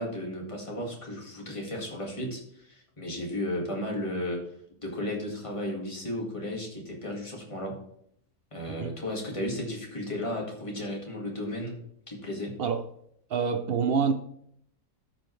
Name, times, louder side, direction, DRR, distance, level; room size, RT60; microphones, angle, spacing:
voice 1, 0.0-4.5 4.8-7.7 8.5-11.7 12.1-12.5, left 1 dB, 20° left, 2.0 m, -34 dB
voice 2, 8.7-9.0 12.6-12.9 13.3-14.1, right 6 dB, 85° right, 0.5 m, -27 dB
14.0 x 5.1 x 3.2 m
omnidirectional pair, 1.7 m